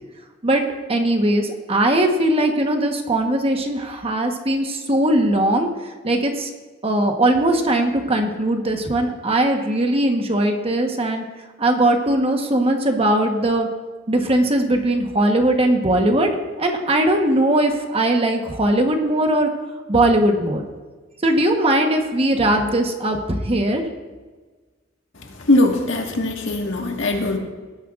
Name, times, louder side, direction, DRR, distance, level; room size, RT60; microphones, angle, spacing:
voice 1, 0.9-5.7 6.0-6.5 6.8-11.2 11.6-13.7 14.1-16.3 16.6-19.5 19.9-20.6 21.2-23.8, right 1 dB, 30° right, 4 dB, 1.1 m, -19 dB
voice 2, 25.1-27.4, left 2 dB, 90° left, 1 dB, 1.7 m, -21 dB
18.0 x 10.0 x 2.5 m, 1.3 s
head